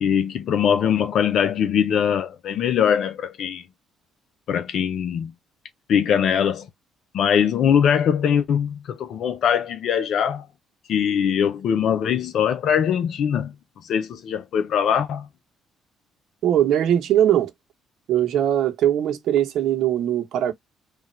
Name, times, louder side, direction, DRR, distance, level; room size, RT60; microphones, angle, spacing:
voice 1, 0.0-3.6 4.5-5.3 5.9-6.7 7.1-10.5 10.9-13.5 13.8-15.3, left 8 dB, 65° left, 0.6 m, -22 dB
voice 2, 16.4-17.5 18.1-20.5, right 11 dB, 70° right, 0.9 m, -20 dB
3.4 x 2.5 x 4.3 m
cardioid pair, 85°, 0 cm